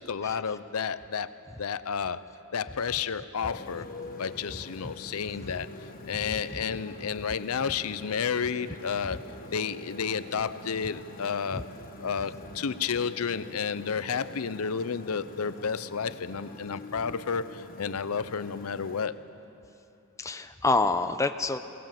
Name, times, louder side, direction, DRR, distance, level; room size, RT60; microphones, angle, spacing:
voice 1, 0.0-3.9 4.2-9.2 9.5-11.7 12.0-19.2, left 6 dB, 80° left, 14 dB, 0.6 m, -31 dB
Motorcycle, 3.4-19.1, left 2 dB, 40° left, 1.1 m, -45 dB
voice 2, 20.2-21.6, left 3 dB, 15° left, 8 dB, 0.6 m, -27 dB
22.0 x 18.5 x 7.6 m, 2.8 s
head